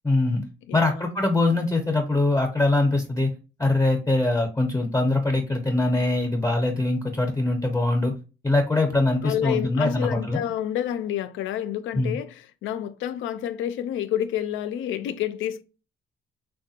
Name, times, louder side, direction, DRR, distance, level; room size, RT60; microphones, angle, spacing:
voice 1, 0.0-0.4 0.7-3.3 3.6-8.1 8.4-10.4 11.9-12.2, left 2 dB, 15° left, 0.6 m, -23 dB
voice 2, 9.2-15.6, left 11 dB, 75° left, 0.4 m, -29 dB
3.4 x 2.2 x 2.7 m
cardioid pair, 90°, 20 cm